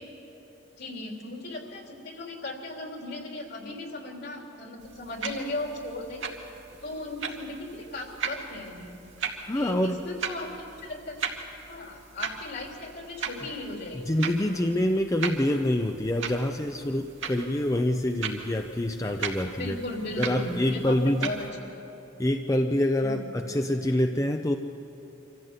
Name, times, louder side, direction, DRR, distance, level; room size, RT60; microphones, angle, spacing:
voice 1, 0.8-6.2 6.8-8.9 9.5-11.1 11.6-14.0 19.6-21.8 23.0-23.2, left 2 dB, 60° left, 1 dB, 3.4 m, -37 dB
sound 1, 4.8-21.5, right 5 dB, 90° right, 2.1 m, -38 dB
voice 2, 9.4-10.0 14.1-19.8 20.2-21.3 22.2-24.5, left 1 dB, 15° left, 5 dB, 0.6 m, -26 dB
25.5 x 15.0 x 8.1 m, 2.9 s
head